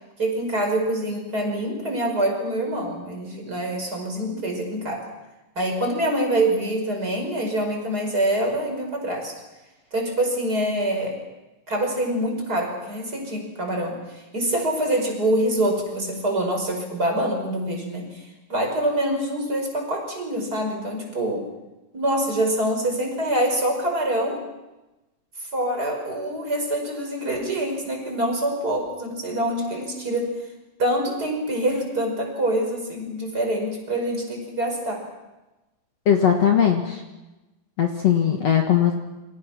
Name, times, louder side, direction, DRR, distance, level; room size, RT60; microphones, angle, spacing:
voice 1, 0.2-5.1 5.6-9.3 9.9-11.2 11.7-21.4 21.9-24.4 25.5-30.3 30.8-35.0, right 1 dB, 25° right, 2 dB, 5.7 m, -25 dB
voice 2, 36.1-37.0 37.8-39.0, left 9 dB, 55° left, 3 dB, 2.5 m, -19 dB
29.5 x 25.0 x 6.0 m, 1.1 s
omnidirectional pair, 4.0 m